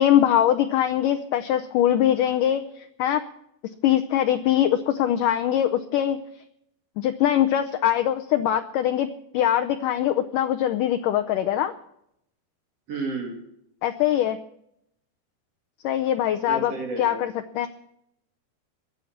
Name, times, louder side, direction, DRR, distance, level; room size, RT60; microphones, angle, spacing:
voice 1, 0.0-3.2 3.8-6.2 7.0-11.7 13.8-14.4 15.8-17.7, left 11 dB, 85° left, 7 dB, 1.9 m, -22 dB
voice 2, 12.9-13.4 16.5-17.2, right 3 dB, 45° right, 2 dB, 3.1 m, -31 dB
21.5 x 8.6 x 5.9 m, 0.75 s
omnidirectional pair, 4.7 m